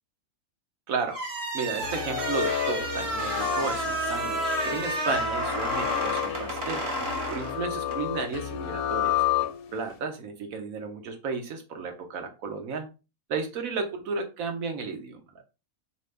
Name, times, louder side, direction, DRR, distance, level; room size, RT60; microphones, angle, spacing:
voice 1, 0.9-1.2 1.5-6.8 7.3-9.2 9.7-12.9 13.3-15.4, right 4 dB, 75° right, 5 dB, 1.2 m, -33 dB
sound 1, 1.1-8.0, right 1 dB, 50° right, 1.1 m, -31 dB
sound 2, 1.7-10.0, left 12 dB, 80° left, 1.0 m, -31 dB
4.3 x 3.0 x 3.2 m, 0.30 s
omnidirectional pair, 1.5 m